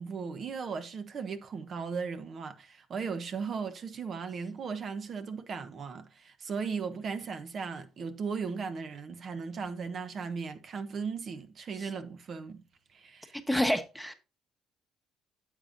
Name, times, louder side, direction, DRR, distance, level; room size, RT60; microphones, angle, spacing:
voice 1, 0.0-12.6 12.9-13.4, right 5 dB, 50° right, 1.1 m, -37 dB
voice 2, 13.5-14.1, equal, ahead, 1.2 m, -28 dB
9.6 x 7.6 x 2.7 m
cardioid pair, 95°, 0 cm